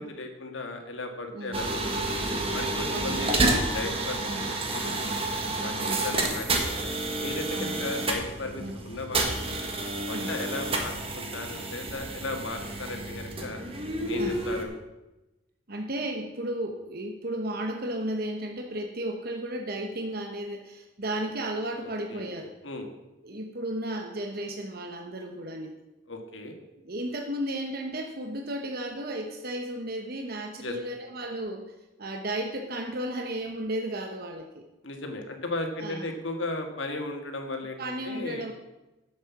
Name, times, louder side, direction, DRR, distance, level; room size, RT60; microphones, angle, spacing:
voice 1, 0.0-1.9 2.2-5.1 5.6-9.6 10.1-13.6 14.1-14.7 21.8-22.3 22.6-22.9 26.1-26.5 30.6-30.7 34.8-38.5, left 2 dB, 70° left, 4 dB, 1.8 m, -36 dB
sound 1, 1.5-14.6, right 2 dB, 30° right, 1.5 m, -30 dB
voice 2, 2.9-3.4 4.3-4.5 5.8-6.1 7.5-8.0 8.6-8.8 10.1-10.4 14.2-14.4 15.7-22.5 23.2-25.7 26.8-31.7 32.0-34.6 35.8-36.1 37.8-38.5, right 1 dB, 50° right, 4 dB, 1.0 m, -34 dB
9.5 x 7.7 x 7.2 m, 1.0 s
head